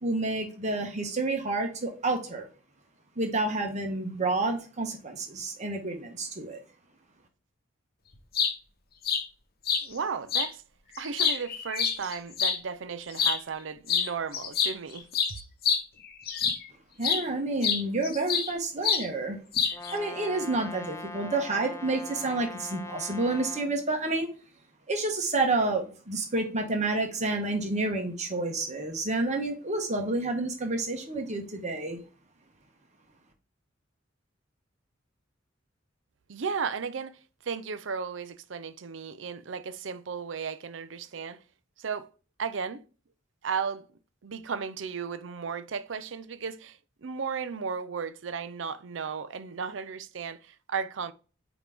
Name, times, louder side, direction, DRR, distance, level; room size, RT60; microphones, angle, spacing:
voice 1, 0.0-2.5 3.2-6.6 17.0-19.4 19.9-24.3 24.9-32.0, right 2 dB, 40° right, 1.2 m, -29 dB
sound 1, 8.1-8.5 9.0-9.2 9.7-9.8 10.3-10.5 11.0-12.6 13.1-13.4 13.9-14.1 14.3-16.7 17.0-17.2 17.6-18.5 18.8-19.1 19.5-19.9, left 7 dB, 50° left, 0.9 m, -26 dB
voice 2, 9.8-10.6 11.0-15.1 36.3-41.4 41.8-42.1 42.4-42.8 43.4-43.9 44.2-51.1, right 6 dB, 75° right, 0.6 m, -35 dB
Brass instrument, 19.7-23.7, left 2 dB, 15° left, 0.5 m, -41 dB
8.9 x 3.0 x 3.5 m
head